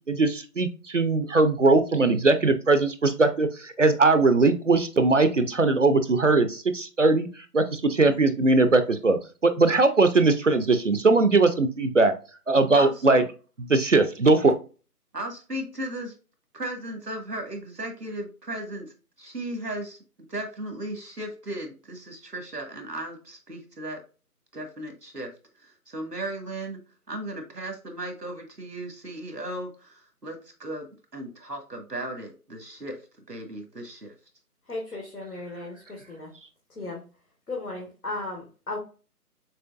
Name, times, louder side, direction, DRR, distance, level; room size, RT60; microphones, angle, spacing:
voice 1, 0.1-7.3 7.5-12.1 12.5-13.2 13.6-14.6, right 3 dB, 50° right, 10 dB, 0.7 m, -20 dB
voice 2, 12.7-13.0 15.1-16.1 16.5-20.0 20.3-24.0 24.5-25.3 25.6-26.8 27.1-33.0 33.3-34.1, right 1 dB, 85° right, 5 dB, 1.7 m, -36 dB
voice 3, 34.7-36.3 36.7-37.0 37.5-38.8, left 2 dB, 70° left, -2 dB, 1.9 m, -35 dB
6.7 x 3.1 x 2.4 m, 0.34 s
figure-of-eight pair, 160°, 47 cm